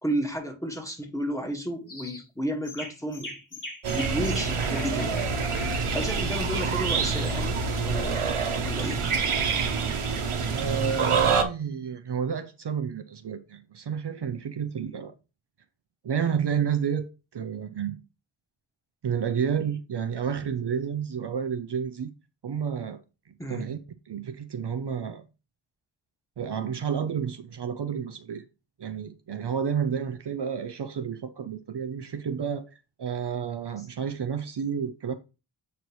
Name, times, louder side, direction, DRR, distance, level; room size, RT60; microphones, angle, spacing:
voice 1, 0.0-3.3 3.9-5.2 5.5-8.3 8.6-9.1 23.4-23.7, right 1 dB, 5° left, 1.6 m, -32 dB
sound 1, 1.9-2.2 2.6-7.4, left 2 dB, 40° left, 1.6 m, -42 dB
sound 2, 3.8-11.4, right 5 dB, 90° right, 1.0 m, -26 dB
voice 2, 10.5-15.1 16.0-18.0 19.0-22.1 22.4-23.0 23.3-23.8 24.1-25.2 26.4-28.4 28.8-32.7 33.0-35.1, right 7 dB, 55° right, 0.7 m, -30 dB
8.1 x 4.5 x 3.1 m
wide cardioid pair, 85°, 49 cm